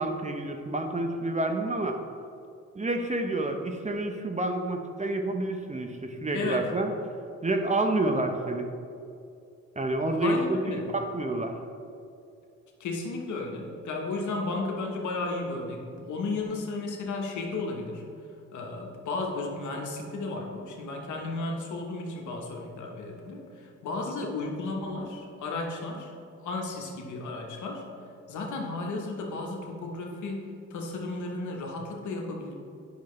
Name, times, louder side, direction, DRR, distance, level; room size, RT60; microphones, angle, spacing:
voice 1, 0.0-2.0 2.7-6.9 7.4-8.7 9.8-11.5, right 2 dB, 25° right, 4 dB, 0.8 m, -28 dB
voice 2, 6.3-6.7 10.1-10.9 12.8-18.0 18.5-26.1 26.4-27.8 28.3-32.5, left 3 dB, 75° left, 1 dB, 1.2 m, -34 dB
8.3 x 6.1 x 3.2 m, 2.6 s
supercardioid pair, 50°, 30 cm